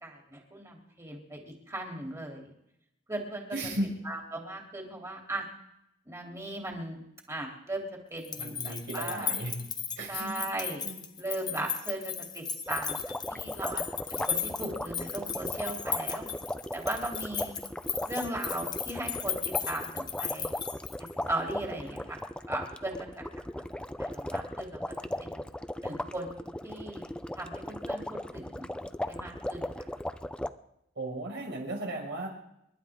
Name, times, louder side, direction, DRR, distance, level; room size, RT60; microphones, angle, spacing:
voice 1, 0.0-2.5 3.1-3.5 4.0-5.5 6.0-7.0 7.3-9.3 10.1-10.8 11.2-13.0 13.3-13.8 14.1-16.3 16.7-17.5 18.1-20.5 21.0-22.2 22.5-23.2 24.0-24.8 25.2-25.4 25.8-27.0 27.3-28.7 29.1-29.7, right 1 dB, 15° right, 0 dB, 3.3 m, -37 dB
voice 2, 3.5-3.9 8.4-9.6 10.0-10.3 10.8-11.1 31.0-32.3, right 1 dB, 65° right, -1 dB, 5.7 m, -35 dB
sound 1, 8.2-21.2, left 7 dB, 20° left, 1.1 m, -36 dB
sound 2, 12.7-30.5, left 1 dB, 5° left, 0.6 m, -37 dB
28.5 x 12.0 x 3.7 m, 0.81 s
head